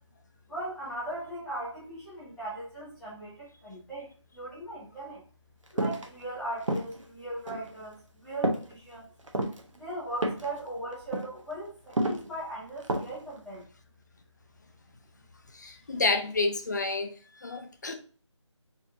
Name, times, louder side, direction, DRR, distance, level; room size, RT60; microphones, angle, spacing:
voice 1, 0.5-5.2 5.7-9.1 9.7-13.6, right 1 dB, 5° left, 1.5 m, -39 dB
sound 1, 5.8-6.1 6.6-7.0 7.5-7.7 8.4-8.7 9.2-9.6 10.2-10.6 10.9-11.3 11.9-12.3 12.8-13.2 13.5-13.6, right 1 dB, 85° right, 1.1 m, -29 dB
voice 2, 15.5-17.2 17.4-17.9, left 3 dB, 35° left, 0.7 m, -29 dB
4.6 x 4.4 x 2.6 m
figure-of-eight pair, 165°, 16 cm